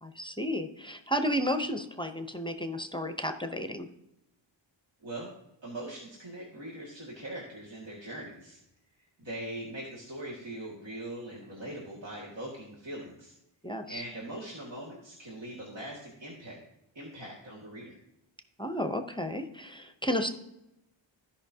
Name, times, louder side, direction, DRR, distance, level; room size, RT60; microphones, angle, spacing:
voice 1, 0.0-3.9 13.6-14.0 18.6-20.3, equal, 10° left, 7 dB, 0.7 m, -32 dB
voice 2, 5.0-5.3 5.6-8.6 9.2-13.3 13.9-16.6 16.9-18.0, right 1 dB, 65° right, -5 dB, 2.1 m, -41 dB
15.0 x 5.5 x 2.8 m, 0.86 s
wide cardioid pair, 85°, 47 cm